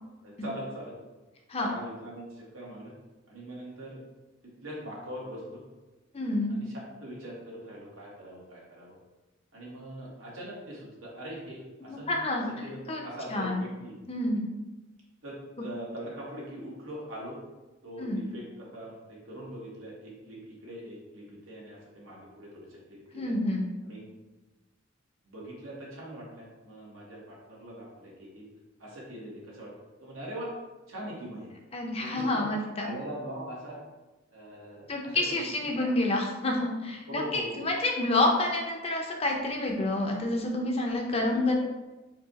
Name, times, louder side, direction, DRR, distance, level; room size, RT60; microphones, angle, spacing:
voice 1, 0.2-0.9 1.6-2.9 3.3-4.0 4.4-5.6 6.5-8.9 9.5-12.1 12.6-14.0 15.2-17.4 17.8-23.3 23.8-24.0 25.3-28.4 28.8-29.7 30.0-30.6 30.9-31.5 32.0-32.5 32.8-33.8 34.3-35.2 35.6-36.1 37.1-37.7, equal, 80° right, -4 dB, 1.4 m, -42 dB
voice 2, 6.1-6.6 11.9-13.0 13.3-13.6 14.1-14.5 18.0-18.2 23.1-23.7 31.7-32.9 34.9-41.5, left 2 dB, 30° left, 1 dB, 0.6 m, -28 dB
4.6 x 2.4 x 4.0 m, 1.1 s
head